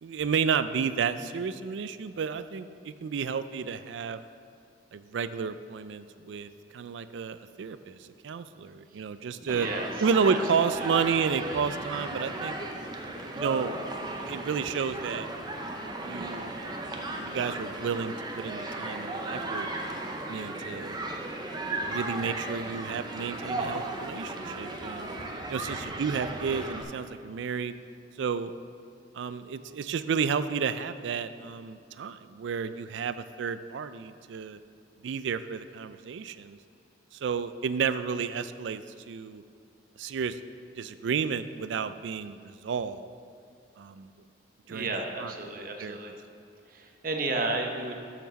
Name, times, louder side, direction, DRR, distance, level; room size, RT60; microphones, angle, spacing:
voice 1, 0.0-4.2 4.9-9.7 10.0-12.6 13.3-13.7 14.3-15.3 16.0-16.5 17.2-19.7 20.3-21.0 21.9-25.1 25.5-27.7 28.2-28.5 29.1-34.6 35.0-36.6 37.1-39.4 40.0-40.4 40.8-43.1 43.8-44.1 44.7-44.9 45.2-45.3 45.8-46.0, right 6 dB, 75° right, 12 dB, 0.4 m, -31 dB
voice 2, 9.4-9.9 10.3-10.9 44.7-46.1 46.7-48.0, right 2 dB, 50° right, 3 dB, 0.9 m, -33 dB
Human group actions, 9.5-26.8, right 2 dB, 25° right, 0.7 m, -35 dB
6.9 x 6.0 x 6.2 m, 2.4 s
head